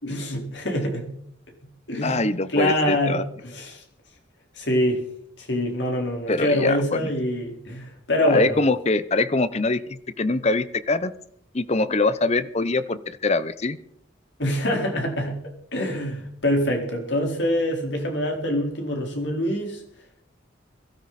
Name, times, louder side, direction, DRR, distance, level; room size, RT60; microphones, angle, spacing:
voice 1, 0.0-1.0 1.9-2.2 2.5-3.8 4.5-5.0 5.4-8.6 14.4-15.4 15.7-19.8, equal, 70° left, 1 dB, 4.4 m, -25 dB
voice 2, 2.0-3.2 6.3-7.1 8.3-11.1 11.5-13.8, left 3 dB, 35° left, 14 dB, 0.8 m, -23 dB
22.0 x 13.0 x 4.3 m, 0.67 s
head